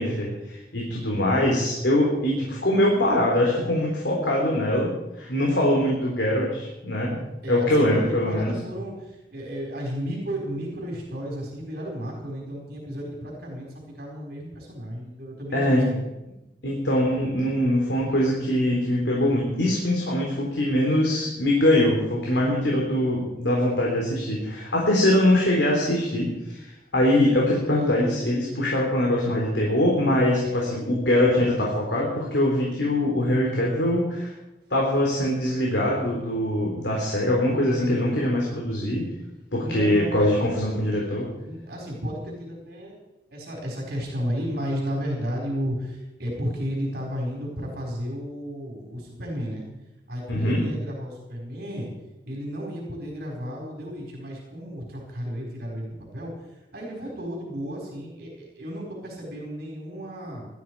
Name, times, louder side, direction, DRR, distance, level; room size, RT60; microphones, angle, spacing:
voice 1, 0.0-4.9 5.2-7.2 7.5-8.5 15.5-15.9 16.6-34.3 34.7-39.1 39.5-41.3 50.3-50.6, left 1 dB, 80° left, -2 dB, 3.7 m, -23 dB
voice 2, 7.4-16.0 39.6-40.3 41.4-43.0 43.3-49.6 50.1-51.9 52.3-60.5, equal, 60° right, -1 dB, 4.7 m, -33 dB
20.0 x 13.5 x 4.8 m, 0.99 s
head